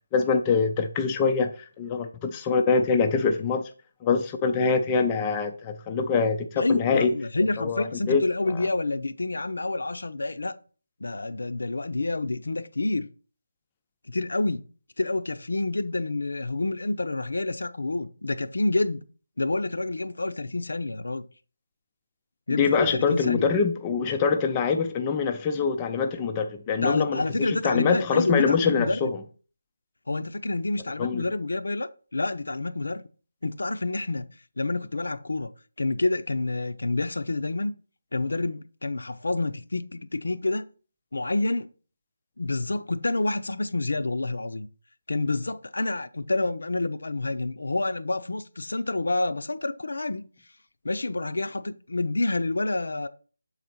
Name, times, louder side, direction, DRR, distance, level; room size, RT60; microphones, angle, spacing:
voice 1, 0.1-3.7 4.0-7.1 7.6-8.2 8.5-8.6 22.6-29.2 31.0-31.3, left 5 dB, 10° left, 0.3 m, -24 dB
voice 2, 6.6-10.5 11.0-13.1 14.1-14.6 15.0-19.0 19.4-21.2 22.5-23.5 26.8-29.1 30.1-33.0 33.4-34.2 34.6-35.5 35.8-37.7 38.1-40.7 41.1-41.7 42.4-44.7 45.1-50.3 50.8-53.1, left 2 dB, 80° left, 0.6 m, -28 dB
7.2 x 4.0 x 4.4 m
figure-of-eight pair, 175°, 0 cm